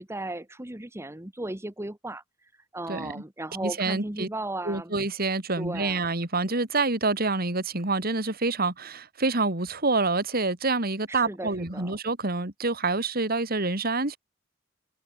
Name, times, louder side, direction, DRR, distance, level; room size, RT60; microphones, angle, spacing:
voice 1, 0.0-4.9 5.6-6.0 11.1-12.0, right 1 dB, 15° right, 1.2 m, -36 dB
voice 2, 2.9-3.2 3.6-4.3 4.7-14.2, right 3 dB, 50° right, 2.8 m, -27 dB
head